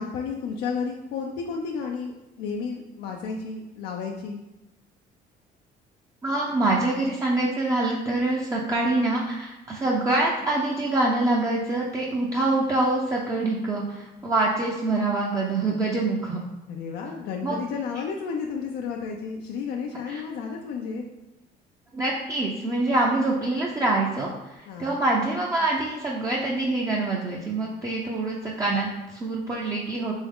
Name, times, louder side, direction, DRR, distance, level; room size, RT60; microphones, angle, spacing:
voice 1, 0.0-2.1 2.4-4.4 16.7-21.0 24.7-25.0, left 5 dB, 85° left, 1 dB, 0.5 m, -32 dB
voice 2, 6.2-16.4 17.4-17.6 20.1-20.2 21.9-30.1, right 2 dB, 20° right, -3 dB, 0.5 m, -25 dB
3.5 x 3.0 x 3.6 m, 0.98 s
cardioid pair, 110°, 17 cm